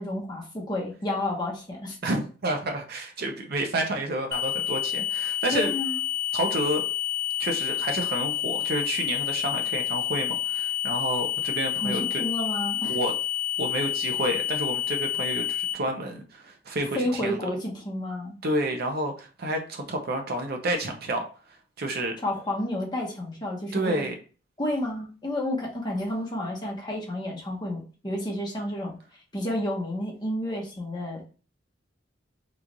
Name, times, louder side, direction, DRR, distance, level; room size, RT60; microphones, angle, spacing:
voice 1, 0.0-2.0 5.5-6.0 11.8-13.0 17.0-18.4 22.2-24.0 24.6-28.9 29.3-31.3, left 1 dB, 25° left, -2 dB, 1.0 m, -30 dB
voice 2, 2.0-5.7 6.3-6.8 7.4-12.0 12.8-13.1 13.6-17.4 18.4-21.2 21.8-22.1 23.7-24.1, right 1 dB, 55° right, 3 dB, 0.7 m, -29 dB
sound 1, 4.3-15.7, left 11 dB, 55° left, 0.4 m, -29 dB
3.1 x 2.4 x 3.9 m, 0.37 s
head